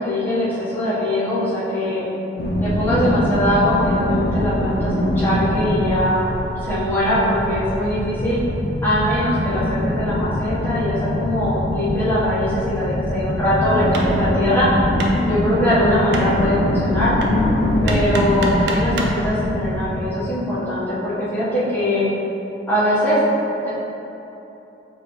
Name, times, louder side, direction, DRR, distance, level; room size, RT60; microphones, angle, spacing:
voice 1, 0.0-2.1 2.6-8.4 8.8-14.7 15.3-17.2 17.8-22.1 22.7-23.2 23.6-23.7, equal, 10° left, -12 dB, 1.2 m, -21 dB
sound 1, 2.4-20.1, left 1 dB, 60° left, 0.5 m, -23 dB
Hammer, 13.9-19.2, right 2 dB, 65° right, 0.4 m, -32 dB
5.0 x 2.8 x 3.1 m, 3.0 s
head